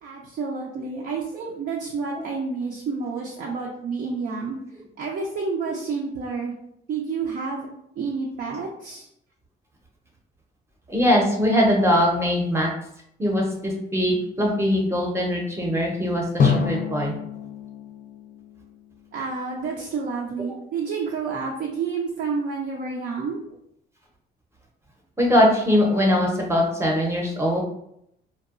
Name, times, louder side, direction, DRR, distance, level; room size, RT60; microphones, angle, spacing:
voice 1, 0.0-4.6 5.0-6.5 6.9-7.7 8.0-9.1 19.1-23.4, right 4 dB, 60° right, -2 dB, 0.5 m, -29 dB
voice 2, 10.9-12.7 13.2-17.1 25.2-27.6, equal, 15° right, -1 dB, 0.7 m, -21 dB
Drum, 16.4-19.3, left 5 dB, 45° left, 0.4 m, -26 dB
2.8 x 2.2 x 2.4 m, 0.75 s
cardioid pair, 90°, 20 cm